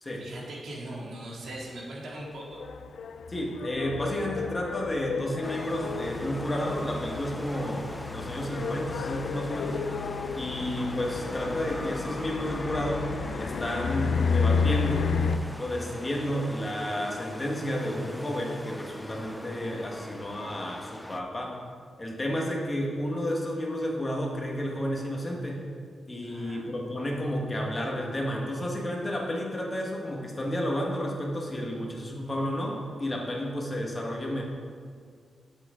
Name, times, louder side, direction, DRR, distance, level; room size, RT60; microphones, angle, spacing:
voice 1, 0.2-2.6 26.2-26.6, right 1 dB, 85° right, -4 dB, 2.2 m, -40 dB
sound 1, 2.2-15.4, left 5 dB, 75° left, 0.4 m, -32 dB
voice 2, 3.3-7.9 8.1-9.8 10.3-13.0 13.4-15.1 15.6-21.6 22.0-25.6 26.1-34.4, equal, 20° left, -1 dB, 1.3 m, -31 dB
sound 2, 5.4-21.2, left 1 dB, 5° left, 0.3 m, -42 dB
10.5 x 7.7 x 3.7 m, 2.1 s
wide cardioid pair, 145°, 0 cm